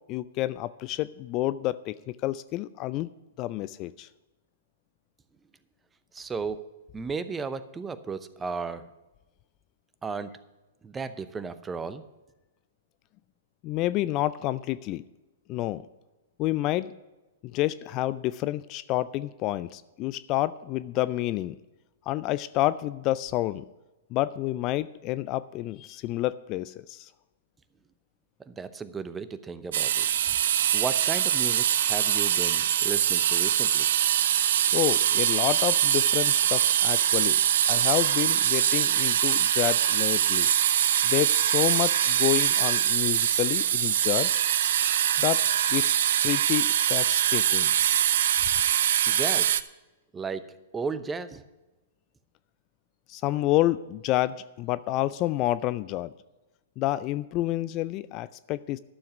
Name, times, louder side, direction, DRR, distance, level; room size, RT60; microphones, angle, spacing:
voice 1, 0.1-3.1 3.4-4.1 13.6-15.0 15.5-15.8 16.4-16.9 17.4-21.6 22.1-23.6 24.1-27.1 34.7-37.4 37.7-40.5 41.0-44.3 45.2-45.9 46.2-47.7 53.1-56.1 56.8-58.8, left 15 dB, 35° left, 16 dB, 0.3 m, -29 dB
voice 2, 6.1-6.6 6.9-8.9 10.0-10.3 10.8-12.0 28.5-30.1 30.7-33.9 49.1-49.6 50.1-51.4, right 5 dB, 15° right, 13 dB, 0.7 m, -34 dB
sound 1, 29.7-49.6, right 10 dB, 60° right, 0.5 m, -23 dB
12.0 x 7.1 x 5.9 m, 1.1 s
figure-of-eight pair, 110°, 0 cm